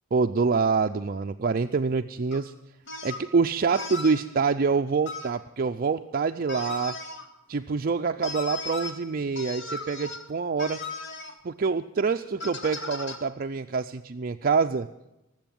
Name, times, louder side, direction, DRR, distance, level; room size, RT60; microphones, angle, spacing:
voice 1, 0.1-2.5 3.0-7.0 7.5-10.8 11.4-14.9, right 5 dB, 45° right, 6 dB, 0.5 m, -26 dB
sound 1, 2.3-2.4 2.9-3.3 3.7-4.2 5.0-5.3 6.5-7.3 8.2-8.9 9.4-10.3 10.6-11.3 12.4-13.2, left 3 dB, 60° left, 2.2 m, -36 dB
19.5 x 7.9 x 9.2 m, 0.91 s
head